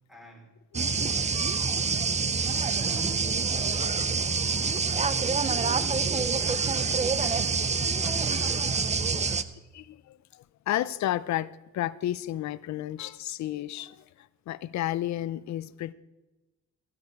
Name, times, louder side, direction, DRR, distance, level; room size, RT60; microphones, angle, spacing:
voice 1, 0.1-1.8 2.8-4.5 5.6-9.5, equal, ahead, 3.9 m, -50 dB
sound 1, 0.7-9.4, right 5 dB, 25° right, 0.6 m, -26 dB
voice 2, 9.7-15.9, left 13 dB, 65° left, 0.6 m, -32 dB
15.0 x 12.0 x 4.7 m
cardioid pair, 90°, 30 cm